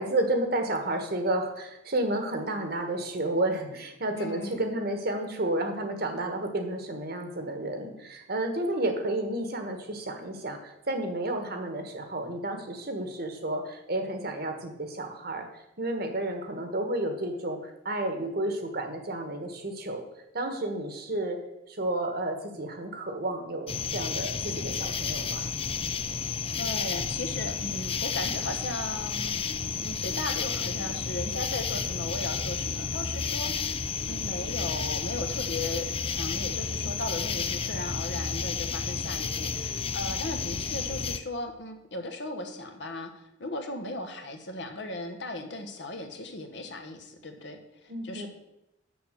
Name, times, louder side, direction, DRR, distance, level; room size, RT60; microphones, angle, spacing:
voice 1, 0.0-20.0 20.3-21.4 21.7-25.5 47.9-48.3, right 1 dB, 55° right, 6 dB, 1.4 m, -31 dB
voice 2, 4.1-4.6 26.6-29.4 29.8-48.3, left 2 dB, 70° left, 5 dB, 1.3 m, -37 dB
sound 1, 23.7-41.2, left 6 dB, 30° left, 0.5 m, -31 dB
7.0 x 6.9 x 6.7 m, 0.90 s
head